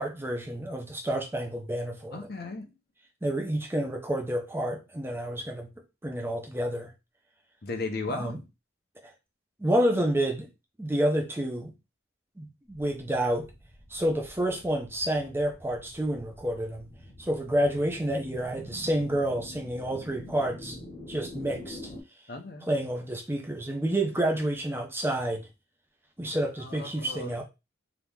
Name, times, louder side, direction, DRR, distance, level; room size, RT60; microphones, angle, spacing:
voice 1, 0.0-2.2 3.2-5.7 6.0-6.9 8.1-8.4 9.6-10.5 10.8-11.7 12.4-13.5 13.9-16.9 17.2-20.8 21.1-21.8 22.6-25.5 26.2-27.4, right 1 dB, 10° right, 0.5 m, -29 dB
voice 2, 2.1-2.7 7.6-8.4 22.3-22.7 26.6-27.4, left 3 dB, 55° left, 0.6 m, -36 dB
sound 1, 12.7-22.0, left 1 dB, 35° left, 1.0 m, -46 dB
2.9 x 2.5 x 3.5 m
head